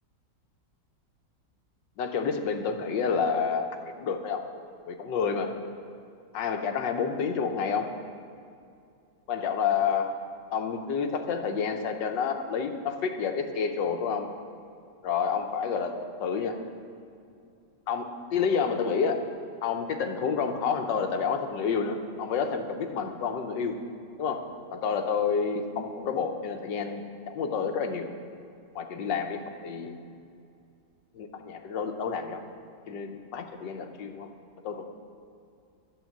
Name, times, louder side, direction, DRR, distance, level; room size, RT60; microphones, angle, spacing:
voice 1, 2.0-3.6 4.0-4.4 4.9-5.5 6.3-7.9 9.3-10.1 10.5-14.3 15.0-16.6 17.9-19.2 19.6-23.8 24.2-24.4 24.7-28.1 28.7-30.0 31.1-32.4 32.9-34.3 34.6-34.9, left 6 dB, 85° left, 5 dB, 1.5 m, -29 dB
11.5 x 6.2 x 7.5 m, 2.5 s
omnidirectional pair, 1.9 m